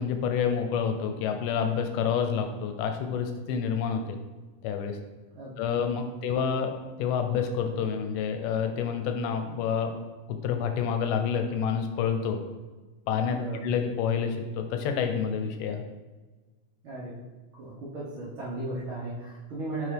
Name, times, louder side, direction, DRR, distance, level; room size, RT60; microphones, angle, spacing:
voice 1, 0.0-4.2 4.6-5.0 5.6-6.7 7.0-9.9 10.3-12.4 13.1-13.4 13.6-15.8, left 7 dB, 80° left, 6 dB, 2.1 m, -28 dB
voice 2, 13.3-13.7 16.8-17.2 17.6-19.9, right 2 dB, 75° right, -8 dB, 1.2 m, -36 dB
6.5 x 4.3 x 3.3 m, 1.2 s
omnidirectional pair, 4.0 m